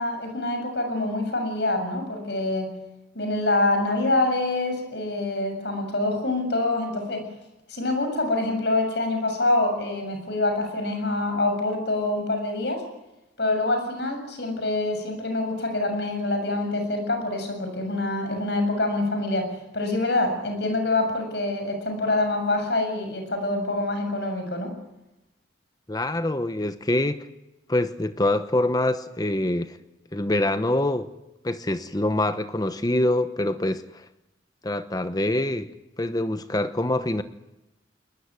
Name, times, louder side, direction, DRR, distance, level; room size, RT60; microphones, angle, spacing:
voice 1, 0.0-2.7 3.1-7.3 7.7-12.8 13.4-24.7, left 2 dB, 65° left, 5 dB, 7.2 m, -26 dB
voice 2, 25.9-27.3 27.7-29.8 30.1-31.1 31.4-34.1 34.6-35.7 36.0-37.2, left 1 dB, 20° left, 10 dB, 0.9 m, -25 dB
21.5 x 20.5 x 9.7 m, 0.94 s
head